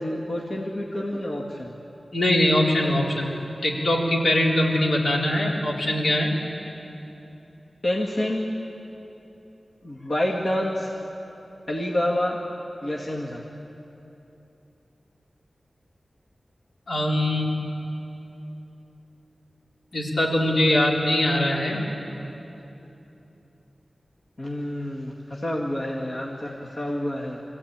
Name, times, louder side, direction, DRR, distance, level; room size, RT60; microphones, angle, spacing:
voice 1, 0.0-1.7 7.8-8.5 9.8-10.9 11.7-12.4 12.8-13.4 24.4-27.4, left 1 dB, 45° left, -3 dB, 2.0 m, -28 dB
voice 2, 2.1-3.3 3.6-6.3 16.9-17.5 19.9-21.8, left 1 dB, 75° left, -2 dB, 3.7 m, -22 dB
25.5 x 15.5 x 8.9 m, 3.0 s
wide cardioid pair, 100°, 0 cm